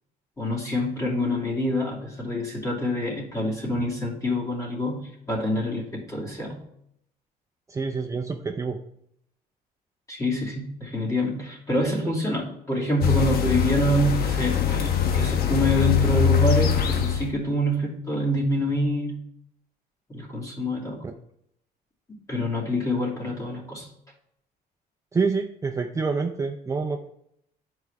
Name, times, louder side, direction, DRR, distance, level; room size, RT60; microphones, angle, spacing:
voice 1, 0.4-6.6 10.1-19.2 20.1-21.0 22.3-23.9, equal, 20° left, -3 dB, 2.7 m, -26 dB
voice 2, 7.7-8.8 21.0-21.1 25.1-27.1, right 4 dB, 20° right, 3 dB, 0.5 m, -27 dB
sound 1, 13.0-17.3, left 8 dB, 65° left, 1.1 m, -22 dB
10.5 x 4.7 x 3.5 m, 0.74 s
cardioid pair, 110°, 17 cm